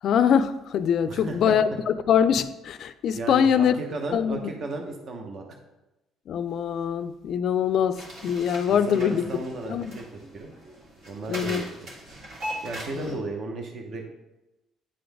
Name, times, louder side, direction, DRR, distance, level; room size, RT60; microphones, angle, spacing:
voice 1, 0.0-3.7 4.1-4.5 6.3-9.2 9.7-10.0 11.3-11.6 13.0-13.2, left 8 dB, 60° left, 0.3 m, -23 dB
voice 2, 1.1-1.4 3.1-5.4 8.7-10.0 10.3-10.5 11.0-11.9 12.6-14.1, right 3 dB, 50° right, 0.9 m, -35 dB
sound 1, 7.9-13.1, equal, 65° right, 2.0 m, -40 dB
9.7 x 3.8 x 3.4 m
cardioid pair, 125°, 0 cm